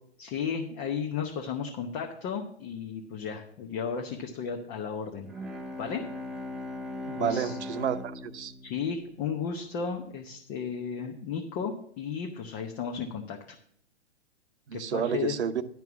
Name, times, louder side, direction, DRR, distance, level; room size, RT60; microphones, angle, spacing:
voice 1, 0.2-5.3 5.8-6.0 7.2-7.6 8.6-13.4 14.7-15.3, left 6 dB, 30° left, 2 dB, 1.0 m, -34 dB
Bowed string instrument, 5.2-9.7, left 2 dB, ahead, 0.6 m, -39 dB
voice 2, 7.1-8.5 14.7-15.6, right 8 dB, 70° right, 11 dB, 0.8 m, -30 dB
11.0 x 4.6 x 7.0 m, 0.66 s
hypercardioid pair, 125°, 35 cm